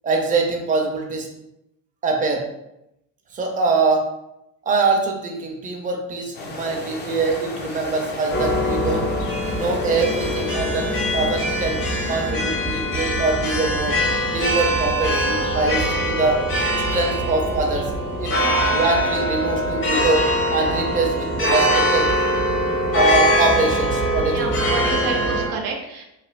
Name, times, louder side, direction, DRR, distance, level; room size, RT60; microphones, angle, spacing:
voice 1, 0.0-1.3 2.0-2.4 3.3-4.1 4.6-9.1 9.5-10.9 11.1-11.8 12.1-14.0 14.3-16.5 16.7-17.9 18.2-22.1 22.9-24.5, right 3 dB, 20° right, 1 dB, 0.6 m, -23 dB
sound 1, 6.3-12.3, left 3 dB, 30° left, 0.6 m, -35 dB
sound 2, 8.3-25.5, equal, 55° left, 1.2 m, -22 dB
voice 2, 18.4-18.8 24.3-26.0, right 4 dB, 90° right, 1 dB, 0.7 m, -29 dB
3.2 x 2.6 x 2.5 m, 0.85 s
supercardioid pair, 100°, 37 cm